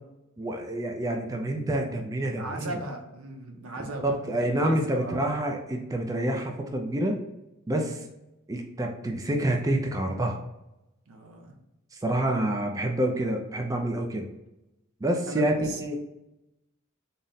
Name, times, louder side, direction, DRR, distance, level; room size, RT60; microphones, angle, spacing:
voice 1, 0.4-2.7 4.0-7.2 7.7-8.0 8.5-10.4 11.9-14.3 15.0-15.5 15.8-16.0, right 1 dB, 15° right, 2 dB, 0.4 m, -27 dB
voice 2, 2.4-5.2 7.7-8.0 11.1-11.6 15.3-15.8, right 2 dB, 85° right, 3 dB, 0.7 m, -38 dB
3.9 x 2.1 x 3.9 m, 0.93 s
head